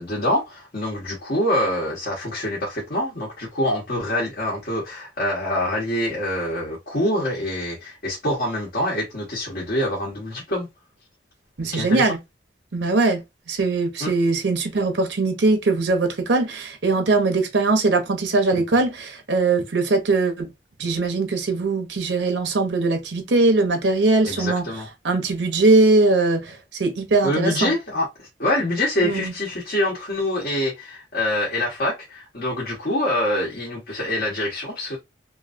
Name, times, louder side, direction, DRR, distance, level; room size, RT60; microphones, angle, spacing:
voice 1, 0.0-10.7 11.7-12.1 14.0-14.1 24.2-24.9 27.2-35.0, left 1 dB, 60° left, 1.3 m, -25 dB
voice 2, 11.6-12.2 12.7-13.2 13.5-20.5 20.8-24.7 25.0-27.7 29.0-29.3, right 3 dB, 80° right, 0.8 m, -21 dB
3.0 x 2.6 x 2.5 m
head